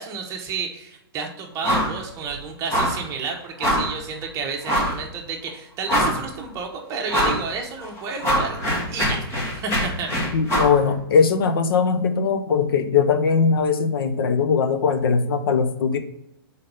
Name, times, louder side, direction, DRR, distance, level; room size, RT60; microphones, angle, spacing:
voice 1, 0.0-8.6 8.9-9.2 9.5-10.1, right 5 dB, 25° right, 2 dB, 1.1 m, -31 dB
sound 1, 1.6-2.0 2.2-2.4 2.7-3.1 3.6-4.0 4.6-5.0 5.5-5.6 5.9-6.4 7.1-7.4 7.8-10.8, equal, 20° left, 1.4 m, -23 dB
voice 2, 10.3-16.0, left 5 dB, 65° left, 8 dB, 0.9 m, -20 dB
5.5 x 4.1 x 5.4 m, 0.81 s
hypercardioid pair, 150°, 13 cm